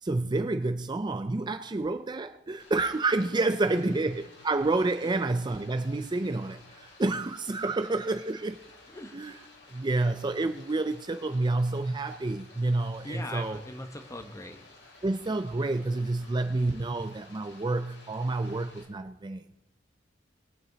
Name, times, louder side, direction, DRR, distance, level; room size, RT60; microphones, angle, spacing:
voice 1, 0.0-8.6 9.1-9.4 9.7-13.6 15.0-19.4, right 2 dB, 25° right, 0.5 m, -29 dB
Stream, 2.6-18.8, left 2 dB, 65° left, 4.1 m, -54 dB
voice 2, 13.0-14.6, left 1 dB, 15° left, 1.2 m, -40 dB
21.5 x 7.8 x 4.0 m
head